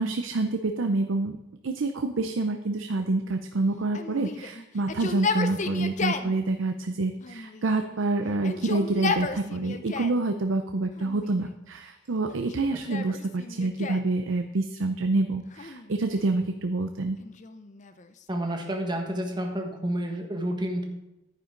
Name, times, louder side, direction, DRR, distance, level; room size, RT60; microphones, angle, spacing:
voice 1, 0.0-1.4 1.6-17.2, right 2 dB, 70° right, 7 dB, 0.6 m, -27 dB
Yell, 3.9-6.3 7.2-8.0 8.3-10.2 11.0-11.6 12.3-14.1 15.5-16.4 17.2-18.9, left 4 dB, 35° left, 0.6 m, -34 dB
voice 2, 18.3-20.8, right 1 dB, 20° right, 2 dB, 1.5 m, -30 dB
10.5 x 9.8 x 3.9 m, 0.95 s
head